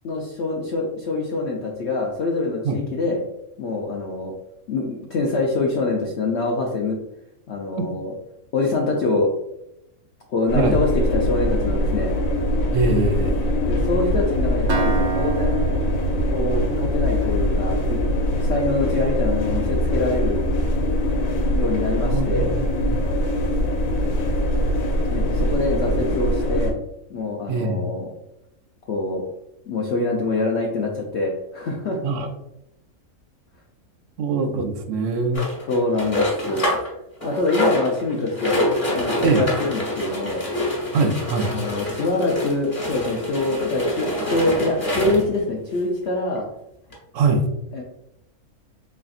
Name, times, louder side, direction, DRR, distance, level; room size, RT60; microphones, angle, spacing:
voice 1, 0.0-3.2 3.6-4.3 4.7-7.0 7.5-8.1 8.5-9.3 10.3-12.1 13.6-15.7 16.3-18.0 18.4-20.4 21.5-22.5 25.1-26.7 27.1-28.1 28.9-29.3 29.7-32.0 35.7-36.7 37.2-40.4 41.5-46.5 47.7-47.8, left 2 dB, 65° left, -1 dB, 0.7 m, -25 dB
sound 1, 10.5-26.7, equal, 85° left, 1.3 m, -22 dB
voice 2, 12.7-13.5 22.1-23.0 27.5-27.9 32.0-32.3 34.2-35.4 39.2-39.4 40.9-41.5 47.1-47.5, right 3 dB, 65° right, 5 dB, 0.9 m, -22 dB
Acoustic guitar, 14.7-18.5, right 5 dB, 90° right, 1.1 m, -29 dB
sound 2, 35.3-36.9 37.2-45.4 46.0-46.1 46.4-46.5 46.9-47.0, left 1 dB, 25° left, 1.2 m, -26 dB
3.8 x 3.3 x 2.4 m, 0.84 s
omnidirectional pair, 1.5 m